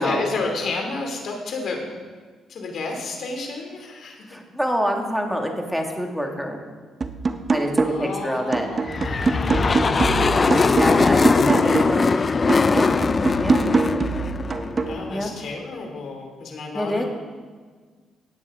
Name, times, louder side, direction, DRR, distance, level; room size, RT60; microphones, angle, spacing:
voice 1, 0.0-1.9 2.5-4.3 7.8-10.3 11.5-12.6 14.8-17.1, left 3 dB, 65° left, 2 dB, 2.7 m, -31 dB
voice 2, 4.3-6.6 7.5-8.7 10.8-12.1 12.7-13.0 13.4-13.7 15.1-15.3 16.7-17.0, equal, ahead, 2 dB, 2.0 m, -26 dB
sound 1, 7.0-8.2 8.5-12.1 12.5-15.0, right 4 dB, 40° right, 0.8 m, -24 dB
sound 2, 8.9-15.3, left 4 dB, 35° left, 0.4 m, -21 dB
17.0 x 9.0 x 3.7 m, 1.5 s
cardioid pair, 80°, 0 cm